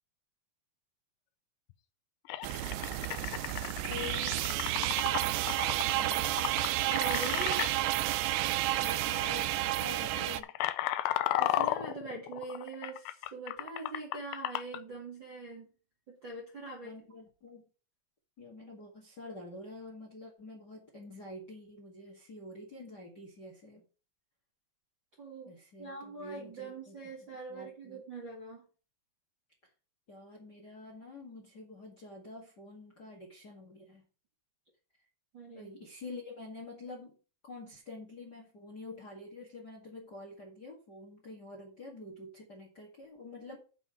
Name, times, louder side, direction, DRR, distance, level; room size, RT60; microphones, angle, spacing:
sound 1, 1.7-1.8 2.3-7.7 8.7-8.9 9.2-9.5 10.0-14.8, left 14 dB, 80° left, 2.2 m, -34 dB
sound 2, 2.4-10.4, right 15 dB, 85° right, 2.7 m, -31 dB
voice 1, 3.9-4.4 5.9-6.3 8.8-10.5 16.8-17.7 18.4-23.8 25.4-26.9 27.5-28.0 30.1-34.0 35.5-37.2 37.4-43.6, left 2 dB, 40° left, 0 dB, 1.5 m, -47 dB
voice 2, 6.9-7.7 11.0-15.7 16.1-16.9 25.2-28.6 35.3-35.7, right 3 dB, 45° right, -2 dB, 1.6 m, -43 dB
7.1 x 5.7 x 6.7 m, 0.36 s
omnidirectional pair, 4.9 m